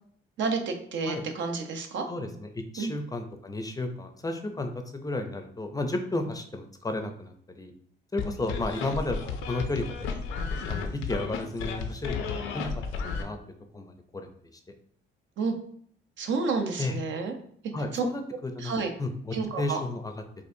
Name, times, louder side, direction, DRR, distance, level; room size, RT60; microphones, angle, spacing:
voice 1, 0.4-2.0 2.8-2.9 15.4-15.5 16.2-17.3 17.9-18.0 18.6-18.9 19.3-19.8, right 4 dB, 70° right, 5 dB, 0.7 m, -30 dB
voice 2, 2.1-7.7 8.1-10.1 10.7-13.4 13.7-14.3 16.8-17.0 17.7-18.7 19.0-20.1, left 2 dB, 20° left, 5 dB, 0.5 m, -33 dB
sound 1, 8.2-13.2, left 5 dB, 85° left, 0.5 m, -33 dB
4.3 x 2.5 x 2.6 m, 0.62 s
cardioid pair, 90°, 20 cm